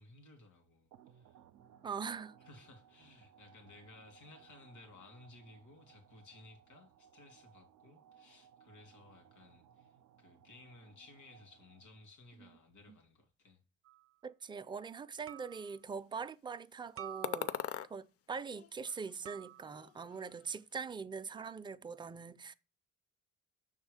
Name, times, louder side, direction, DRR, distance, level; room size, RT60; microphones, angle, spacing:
voice 1, 0.0-1.4 2.4-13.6, left 2 dB, 85° left, 2.1 m, -58 dB
sound 1, 0.9-12.3, right 9 dB, 85° right, 0.5 m, -63 dB
voice 2, 1.8-2.4 14.2-17.5 17.9-22.5, right 5 dB, 15° right, 0.3 m, -42 dB
sound 2, 13.9-14.1 15.3-15.8 17.0-17.9 19.3-19.9, right 12 dB, 50° right, 0.6 m, -50 dB
sound 3, 17.2-17.9 18.5-19.5 19.7-20.5, left 10 dB, 50° left, 0.4 m, -41 dB
6.1 x 3.6 x 4.8 m
cardioid pair, 90°, 30 cm